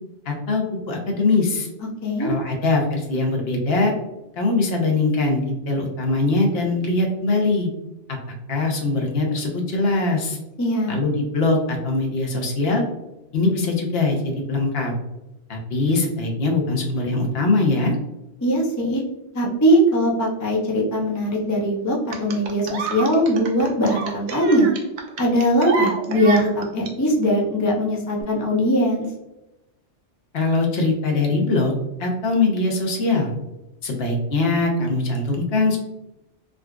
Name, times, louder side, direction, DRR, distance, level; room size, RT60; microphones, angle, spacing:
voice 1, 0.3-1.7 2.2-3.9 4.4-7.7 8.5-10.4 10.9-12.8 13.3-14.2 14.5-14.9 15.5-17.9 30.3-31.7 32.0-33.3 33.8-35.8, left 3 dB, 60° left, 1 dB, 0.8 m, -22 dB
voice 2, 10.6-10.9 18.4-19.0 19.3-24.7 25.2-29.1, equal, 30° left, -2 dB, 0.3 m, -20 dB
sound 1, 22.1-26.9 28.1-28.2, right 3 dB, 70° right, 0.8 m, -29 dB
3.7 x 2.3 x 2.2 m, 0.93 s
omnidirectional pair, 1.2 m